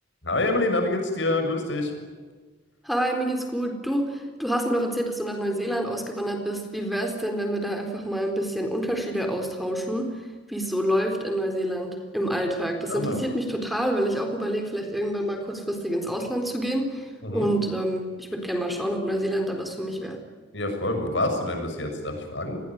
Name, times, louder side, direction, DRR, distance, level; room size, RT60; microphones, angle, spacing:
voice 1, 0.2-1.9 12.9-13.2 17.2-17.5 20.5-22.6, left 2 dB, 85° left, 5 dB, 7.1 m, -26 dB
voice 2, 2.8-10.1 10.5-20.2, equal, ahead, 4 dB, 4.0 m, -27 dB
30.0 x 21.0 x 9.4 m, 1.4 s
head